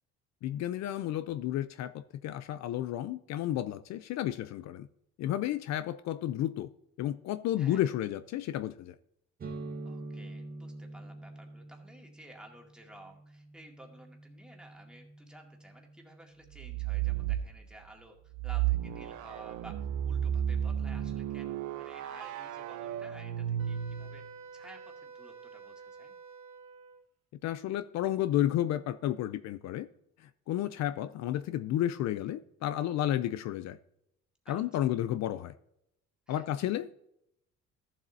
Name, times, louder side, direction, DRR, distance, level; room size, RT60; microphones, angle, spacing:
voice 1, 0.4-4.9 5.2-6.7 7.0-8.9 27.4-29.9 30.2-33.8 34.5-35.5 36.3-36.9, left 12 dB, 65° left, 0.5 m, -32 dB
voice 2, 7.6-7.9 9.9-24.2 24.5-26.1 34.5-34.6 36.3-36.5, right 1 dB, 5° right, 1.9 m, -54 dB
sound 1, 9.4-17.0, right 2 dB, 30° right, 1.0 m, -46 dB
sound 2, 16.5-17.5 18.3-24.3, right 10 dB, 85° right, 0.7 m, -33 dB
Wind instrument woodwind instrument, 23.6-27.0, right 5 dB, 60° right, 1.5 m, -50 dB
14.0 x 7.5 x 2.7 m
cardioid pair, 130°, 29 cm